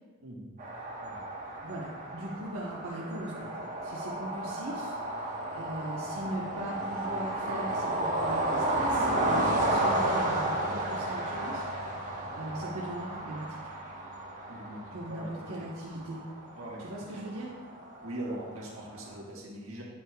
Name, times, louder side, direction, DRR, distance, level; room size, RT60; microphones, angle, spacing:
sound 1, 0.6-19.2, right 1 dB, 40° right, 1.2 m, -32 dB
voice 1, 1.6-3.6 3.8-11.6 11.9-13.6 14.9-16.2 16.8-17.5, right 1 dB, 90° right, -5 dB, 1.0 m, -39 dB
voice 2, 14.5-15.7 16.6-16.8 17.1-17.2 18.0-19.8, right 1 dB, 70° right, -3 dB, 1.6 m, -41 dB
8.7 x 7.9 x 2.3 m, 1.3 s
head